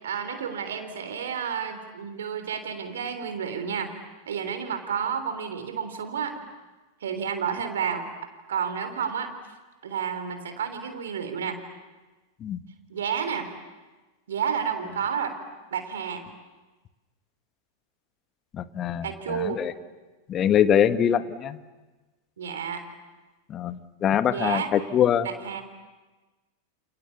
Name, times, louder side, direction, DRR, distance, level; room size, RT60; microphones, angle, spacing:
voice 1, 0.0-4.0 4.3-6.4 7.0-8.1 8.5-9.3 9.8-11.6 12.9-13.5 14.3-15.4 15.7-16.4 19.0-19.6 22.4-22.8 24.3-24.7 25.2-25.6, right 7 dB, 70° right, 7 dB, 3.6 m, -30 dB
voice 2, 18.5-19.7 20.3-21.6 23.5-25.3, left 9 dB, 30° left, 12 dB, 1.4 m, -23 dB
29.0 x 29.0 x 7.2 m, 1.2 s
figure-of-eight pair, 90°, 0 cm